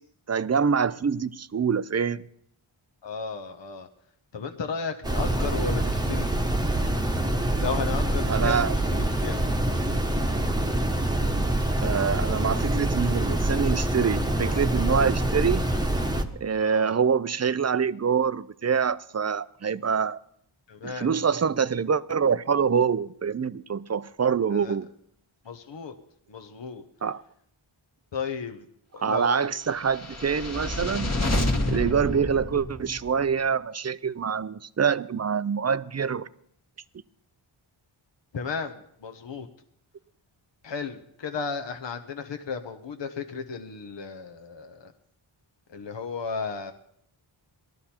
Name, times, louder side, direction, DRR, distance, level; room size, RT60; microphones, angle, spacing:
voice 1, 0.3-2.2 8.3-8.8 11.8-15.6 16.3-20.2 20.8-24.9 27.0-27.2 29.0-31.1 31.7-36.3, right 6 dB, 35° right, 0.4 m, -25 dB
voice 2, 3.0-3.9 4.3-6.3 7.6-8.7 9.2-9.4 16.6-16.9 20.7-21.1 24.5-24.7 25.5-25.9 26.3-26.8 28.1-28.6 28.9-29.5 38.3-38.7 39.0-39.5 40.6-44.8 45.7-46.7, left 5 dB, 60° left, 1.0 m, -34 dB
sound 1, 5.0-16.2, right 1 dB, 10° right, 1.1 m, -25 dB
sound 2, 29.8-33.2, left 1 dB, 30° left, 1.5 m, -28 dB
18.5 x 13.0 x 4.3 m
wide cardioid pair, 80°, 50 cm